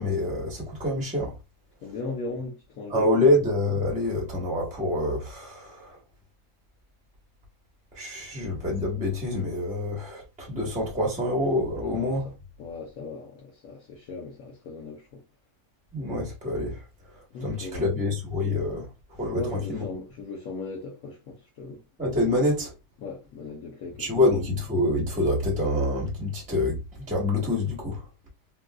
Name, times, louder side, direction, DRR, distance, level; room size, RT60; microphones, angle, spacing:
voice 1, 0.0-1.3 2.9-6.0 7.9-12.3 15.9-16.8 17.4-18.9 19.2-19.4 19.7-19.8 22.0-22.7 24.0-26.8 27.1-28.0, left 1 dB, 5° right, 0.9 m, -26 dB
voice 2, 1.8-3.3 11.8-12.2 12.6-15.2 17.3-17.9 19.3-21.8 23.0-24.3, left 3 dB, 70° left, 1.2 m, -38 dB
3.7 x 2.5 x 2.2 m
omnidirectional pair, 1.6 m